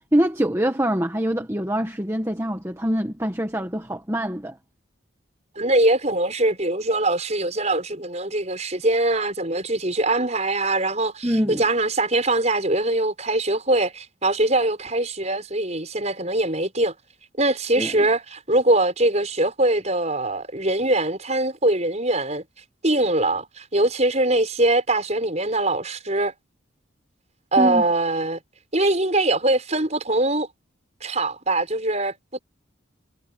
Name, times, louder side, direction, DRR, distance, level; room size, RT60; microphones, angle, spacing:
voice 1, 0.1-4.6 11.2-11.6 17.8-18.1 27.6-27.8, equal, 15° right, 1.5 m, -24 dB
voice 2, 5.6-16.9 17.4-22.4 22.8-26.3 27.5-28.4 28.7-30.5 31.0-32.1, right 2 dB, 35° right, 6.6 m, -22 dB
head